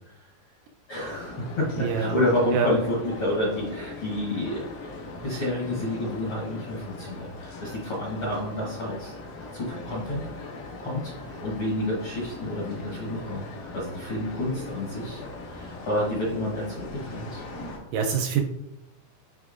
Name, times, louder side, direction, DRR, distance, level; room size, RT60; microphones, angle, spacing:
sound 1, 0.9-17.8, left 2 dB, 85° left, 3.2 m, -40 dB
voice 1, 0.9-4.7 5.1-9.1 9.5-10.2 10.8-17.4, left 1 dB, 65° left, -4 dB, 1.3 m, -29 dB
voice 2, 1.8-2.1 2.5-2.7 17.9-18.4, right 7 dB, 80° right, 3 dB, 1.9 m, -24 dB
10.5 x 3.6 x 2.5 m, 0.92 s
omnidirectional pair, 4.0 m